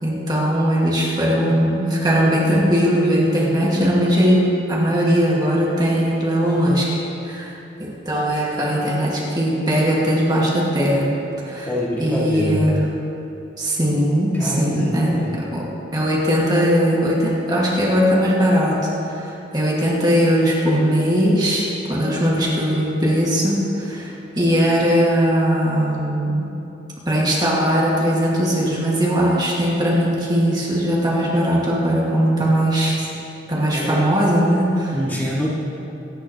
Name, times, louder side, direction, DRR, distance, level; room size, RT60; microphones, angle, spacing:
voice 1, 0.0-7.0 7.2-11.1 11.5-11.7 12.0-12.8 13.6-15.7 15.9-26.5 27.1-33.1 33.5-34.9, equal, 25° right, -5 dB, 2.0 m, -19 dB
voice 2, 11.7-12.6 14.3-15.3 33.7-34.0 34.9-35.5, equal, 10° left, -7 dB, 2.3 m, -24 dB
24.0 x 10.0 x 3.1 m, 2.9 s
head